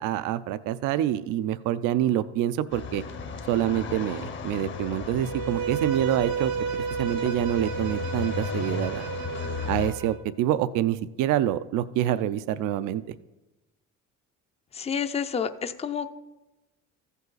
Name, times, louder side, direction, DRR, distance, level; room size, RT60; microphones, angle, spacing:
voice 1, 0.0-3.0 3.5-9.0 9.7-13.1, right 12 dB, 70° right, 14 dB, 0.5 m, -26 dB
sound 1, 2.7-9.9, left 6 dB, 35° left, 0.8 m, -35 dB
Bowed string instrument, 5.2-10.2, right 6 dB, 85° right, 1.1 m, -32 dB
voice 2, 14.7-16.1, left 7 dB, 20° left, 10 dB, 0.5 m, -29 dB
14.5 x 5.5 x 3.9 m, 1.0 s
cardioid pair, 100°, 33 cm